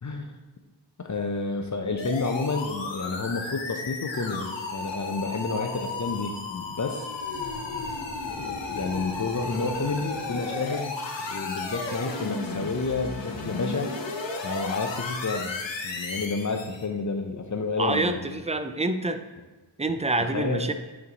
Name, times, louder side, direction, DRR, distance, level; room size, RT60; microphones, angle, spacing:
voice 1, 0.0-0.3 1.0-7.1 8.3-13.9 14.4-18.3 20.2-20.7, left 3 dB, 40° left, 4 dB, 0.6 m, -30 dB
sound 1, 2.0-16.8, left 3 dB, 75° left, 0.9 m, -34 dB
voice 2, 17.8-19.2 19.8-20.7, right 2 dB, 15° right, 8 dB, 0.3 m, -27 dB
8.1 x 3.3 x 3.9 m, 1.2 s
wide cardioid pair, 100°, 44 cm